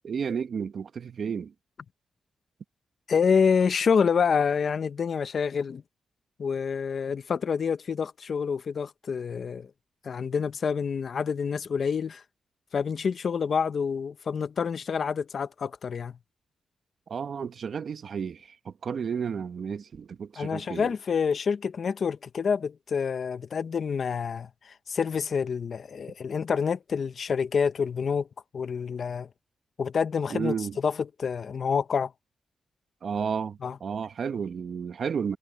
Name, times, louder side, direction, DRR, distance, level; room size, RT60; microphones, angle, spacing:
voice 1, 0.0-1.5 17.1-20.9 30.3-30.8 33.0-35.4, right 6 dB, 65° right, 1.1 m, -32 dB
voice 2, 3.1-5.8 6.4-9.7 10.0-12.2 12.7-16.2 20.4-28.3 28.5-29.3 29.8-30.5 30.8-32.1 33.6-33.8, left 6 dB, 60° left, 1.2 m, -27 dB
cardioid pair, 70°, 0 cm